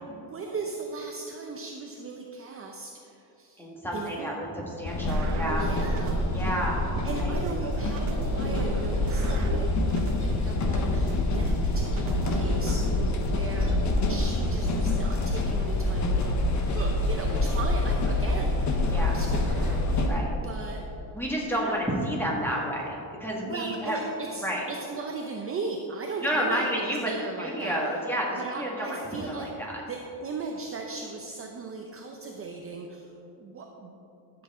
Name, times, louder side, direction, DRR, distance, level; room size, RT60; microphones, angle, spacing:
voice 1, 0.1-3.6 3.9-4.3 5.5-6.4 7.0-13.8 14.1-16.3 16.7-20.2 20.4-20.8 21.5-21.7 23.4-27.8 28.4-29.5 29.9-34.0, right 4 dB, 25° right, 2 dB, 0.7 m, -38 dB
voice 2, 3.6-5.7 6.3-6.8 7.2-7.7 12.9-13.4 18.8-19.2 20.0-20.3 21.1-24.0 24.4-24.6 26.2-27.1 27.4-29.8, equal, 5° left, -3 dB, 2.0 m, -31 dB
sound 1, 4.8-20.1, left 2 dB, 35° left, 1.1 m, -26 dB
sound 2, 5.1-6.5 7.0-10.5 11.0-13.1, right 4 dB, 75° right, 1.1 m, -35 dB
13.0 x 7.9 x 3.8 m, 2.9 s
cardioid pair, 140°, 50 cm